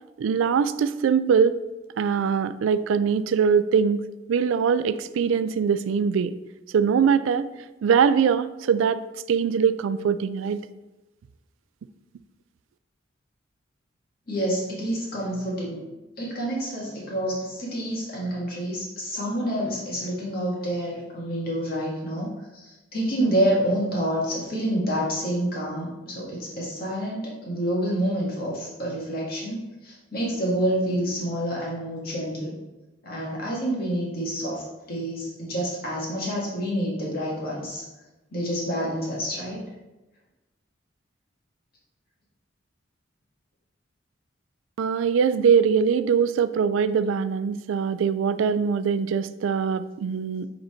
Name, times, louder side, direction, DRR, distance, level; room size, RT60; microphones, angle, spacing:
voice 1, 0.2-1.6 2.0-6.3 6.7-7.5 7.8-9.0 9.3-10.7 44.8-50.5, right 6 dB, 90° right, 14 dB, 0.3 m, -22 dB
voice 2, 14.3-15.8 16.2-22.3 22.5-32.5 33.0-37.8 38.3-39.6, equal, 50° left, -4 dB, 1.8 m, -28 dB
5.5 x 3.9 x 4.4 m, 1.1 s
head